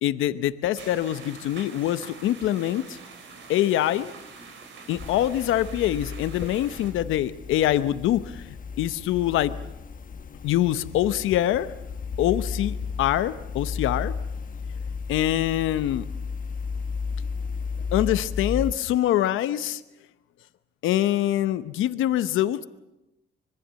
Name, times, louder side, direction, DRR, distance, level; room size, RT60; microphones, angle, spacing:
voice 1, 0.0-3.0 3.5-4.1 4.9-8.5 8.8-9.5 10.4-11.7 12.2-14.1 15.1-16.0 17.9-19.8 20.8-22.6, left 13 dB, 85° left, 12 dB, 0.9 m, -24 dB
sound 1, 0.7-6.9, right 4 dB, 75° right, 5.2 m, -45 dB
sound 2, 5.0-18.7, left 5 dB, 45° left, 1.1 m, -34 dB
25.5 x 22.0 x 7.6 m, 0.94 s
cardioid pair, 90°, 20 cm